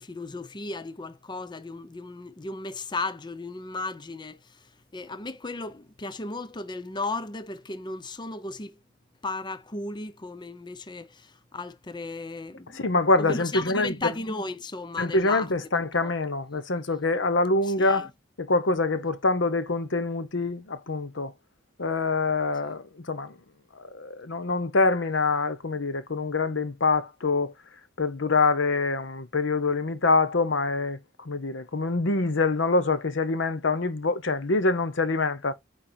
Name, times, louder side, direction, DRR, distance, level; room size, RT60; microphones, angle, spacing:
voice 1, 0.0-8.7 9.2-12.8 13.2-15.5 16.0-16.1 17.6-18.1, left 3 dB, 25° left, 0.6 m, -35 dB
voice 2, 12.7-13.9 15.0-18.1 18.4-21.3 21.8-23.3 23.8-27.5 28.0-31.0 31.2-35.5, left 3 dB, 85° left, 1.0 m, -25 dB
9.0 x 3.2 x 4.4 m
head